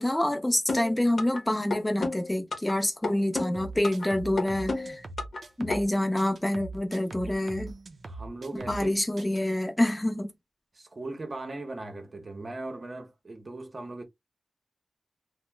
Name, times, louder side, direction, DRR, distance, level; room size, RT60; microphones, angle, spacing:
voice 1, 0.0-5.1 5.6-7.7 8.5-10.3, left 1 dB, 15° left, 0.6 m, -27 dB
sound 1, 0.7-1.4 1.7-2.7 3.0-4.1 4.4-5.4 5.7-5.8, left 3 dB, 80° left, 0.8 m, -31 dB
sound 2, 3.5-5.9 6.2-8.9 9.2-9.4, right 3 dB, 70° right, 0.5 m, -41 dB
voice 2, 8.0-9.0 10.7-14.0, right 2 dB, 40° right, 0.8 m, -39 dB
2.9 x 2.1 x 3.3 m
wide cardioid pair, 125°, 0 cm